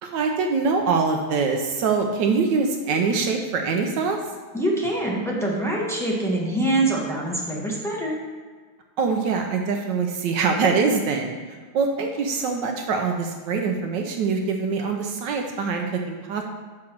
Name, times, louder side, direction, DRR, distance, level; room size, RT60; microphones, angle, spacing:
voice 1, 0.0-4.2 9.0-11.4 11.7-16.4, right 4 dB, 70° right, 3 dB, 1.2 m, -24 dB
voice 2, 4.5-8.2, right 1 dB, ahead, -3 dB, 0.6 m, -24 dB
6.2 x 5.8 x 4.5 m, 1.5 s
omnidirectional pair, 2.2 m